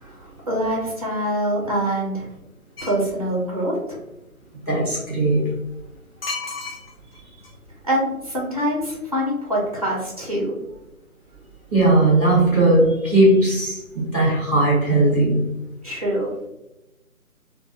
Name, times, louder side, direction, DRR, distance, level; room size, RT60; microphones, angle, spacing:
voice 1, 0.0-2.3 2.8-4.0 7.8-10.5 15.8-16.3, right 1 dB, 25° right, -3 dB, 0.6 m, -25 dB
sound 1, 2.8-3.1 6.2-7.2 7.4-7.5, left 3 dB, 40° left, 0.7 m, -31 dB
voice 2, 4.7-5.5 11.7-15.4, right 2 dB, 5° left, -9 dB, 1.1 m, -18 dB
3.7 x 2.0 x 2.7 m, 0.93 s
figure-of-eight pair, 155°, 44 cm